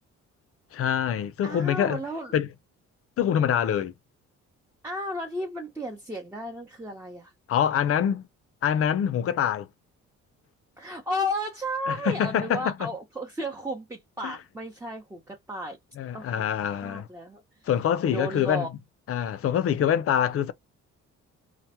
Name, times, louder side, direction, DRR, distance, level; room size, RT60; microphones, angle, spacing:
voice 1, 0.7-2.0 2.3-2.5 3.2-3.9 7.5-8.2 8.6-9.7 11.9-12.9 14.2-14.3 16.0-17.1 17.7-18.7 19.1-20.5, left 9 dB, 50° left, 0.4 m, -25 dB
voice 2, 1.4-2.4 4.8-7.3 10.8-15.8 16.1-17.4 18.1-18.7, equal, 10° right, 0.6 m, -33 dB
2.1 x 2.1 x 2.8 m
cardioid pair, 90°, 30 cm